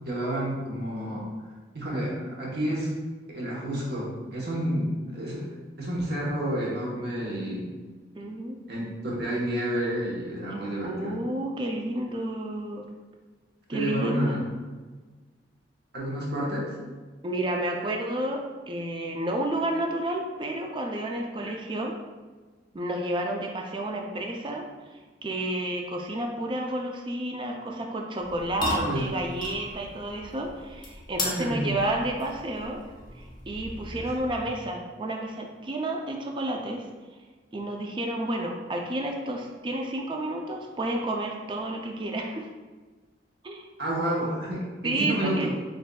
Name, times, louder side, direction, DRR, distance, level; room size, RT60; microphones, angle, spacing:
voice 1, 0.1-1.2 1.7-2.9 3.3-5.5 5.8-7.7 8.7-11.2 13.7-14.4 15.9-16.7 21.4-21.5 28.7-29.1 31.2-31.8 33.9-34.1 43.8-45.5, right 1 dB, 65° right, -4 dB, 1.0 m, -30 dB
voice 2, 8.2-8.6 10.8-12.9 13.7-14.4 17.2-21.9 22.7-24.6 25.2-32.8 33.2-36.9 37.5-42.5 43.4-43.6 44.8-45.5, right 1 dB, 25° right, 1 dB, 0.4 m, -31 dB
sound 1, 28.2-34.6, left 2 dB, 25° left, 0.6 m, -37 dB
6.4 x 2.6 x 2.3 m, 1.3 s
head